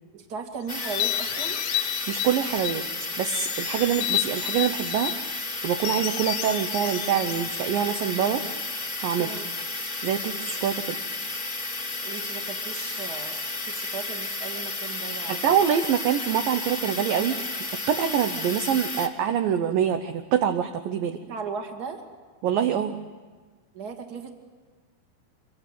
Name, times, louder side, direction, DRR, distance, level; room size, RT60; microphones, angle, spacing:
voice 1, 0.1-1.6 9.2-9.5 12.0-13.4 13.7-15.4 21.2-22.0 23.7-24.3, right 5 dB, 30° right, 4 dB, 2.2 m, -37 dB
sound 1, 0.7-19.1, left 3 dB, 20° left, 1.2 m, -32 dB
sound 2, 0.8-2.9 3.3-5.2 5.8-8.3, left 14 dB, 85° left, 3.7 m, -31 dB
voice 2, 2.1-2.8 3.2-5.1 5.6-8.4 9.0-9.4 10.0-11.0 15.3-17.5 17.9-21.2 22.4-23.0, right 9 dB, 70° right, 7 dB, 2.2 m, -25 dB
25.5 x 24.5 x 9.2 m, 1.4 s
omnidirectional pair, 4.8 m